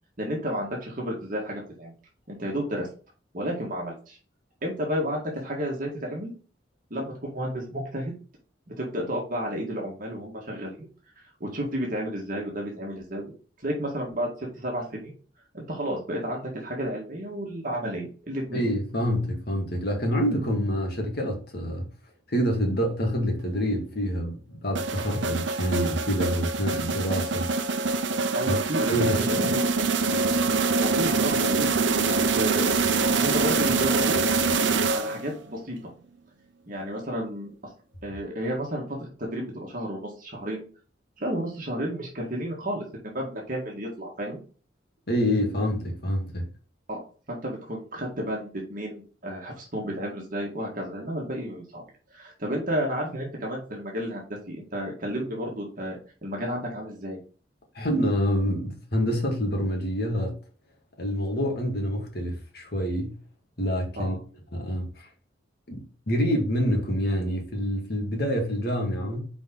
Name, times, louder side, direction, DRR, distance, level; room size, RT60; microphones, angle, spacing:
voice 1, 0.2-1.9 2.3-2.9 3.3-4.2 4.6-6.3 6.9-8.1 8.7-10.9 11.4-13.2 13.6-15.1 15.5-18.6 28.3-28.9 29.1-29.7 30.7-32.7 33.1-34.2 34.9-35.8 36.7-37.5 38.0-40.6 41.2-44.4 46.9-47.0 47.3-51.8 52.1-57.2 64.0-64.2, equal, 50° right, 1.9 m, -32 dB
voice 2, 18.5-21.9 22.3-27.5 28.4-28.6 28.9-29.5 45.1-46.5 57.8-60.4 61.0-63.2 63.6-64.2 64.5-65.1 65.7-69.3, equal, 60° left, 2.1 m, -27 dB
sound 1, 24.7-35.4, right 4 dB, 80° right, 0.7 m, -25 dB
5.8 x 4.9 x 3.9 m
head